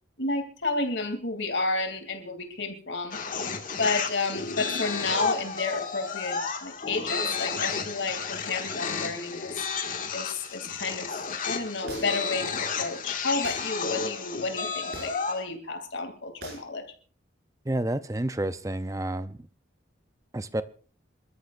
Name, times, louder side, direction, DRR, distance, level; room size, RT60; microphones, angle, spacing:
voice 1, 0.2-3.2 3.8-9.5 10.1-11.1 11.4-16.8, left 3 dB, 80° left, 5 dB, 2.8 m, -31 dB
sound 1, 3.1-15.4, left 5 dB, 45° left, 1.9 m, -32 dB
sound 2, 11.9-12.3 13.4-13.7 14.9-15.3 16.4-16.7, right 2 dB, 55° right, 6.7 m, -41 dB
voice 2, 17.7-19.5 20.3-20.6, right 1 dB, 15° right, 13 dB, 0.6 m, -30 dB
27.0 x 13.5 x 2.5 m, 0.39 s
head